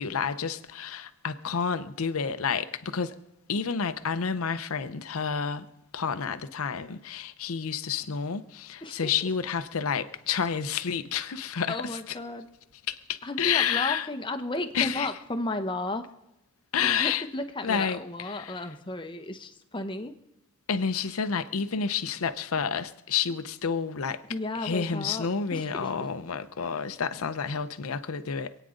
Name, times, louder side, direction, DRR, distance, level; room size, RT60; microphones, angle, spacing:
voice 1, 0.0-3.1 3.5-5.7 5.9-12.2 12.9-14.1 14.7-15.1 16.7-17.2 17.6-18.7 20.7-24.2 24.5-28.5, left 6 dB, 90° left, 0.7 m, -30 dB
voice 2, 8.8-9.1 11.7-12.5 13.2-16.0 16.8-20.1 24.3-25.3 25.5-26.0, left 2 dB, 20° left, 0.9 m, -33 dB
26.5 x 9.2 x 3.8 m
head